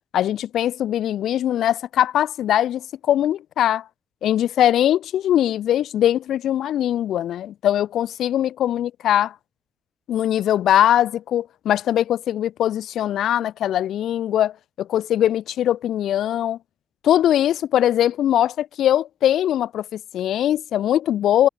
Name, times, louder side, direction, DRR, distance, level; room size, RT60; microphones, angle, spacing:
voice 1, 0.1-3.8 4.2-9.3 10.1-16.6 17.0-21.5, left 11 dB, 75° left, 0.4 m, -21 dB
cardioid pair, 90°, 0 cm